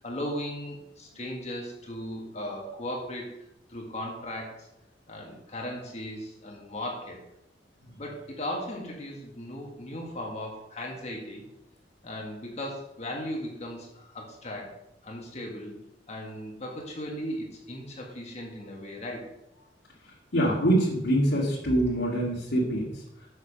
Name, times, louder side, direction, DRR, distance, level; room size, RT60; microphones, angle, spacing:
voice 1, 0.0-3.3 3.7-4.7 5.1-7.2 8.0-11.5 12.0-14.7 15.0-15.8 16.1-19.3, left 1 dB, 40° left, -1 dB, 1.6 m, -37 dB
voice 2, 20.3-22.9, right 1 dB, 85° left, -7 dB, 2.0 m, -25 dB
6.7 x 6.5 x 5.1 m, 0.83 s
head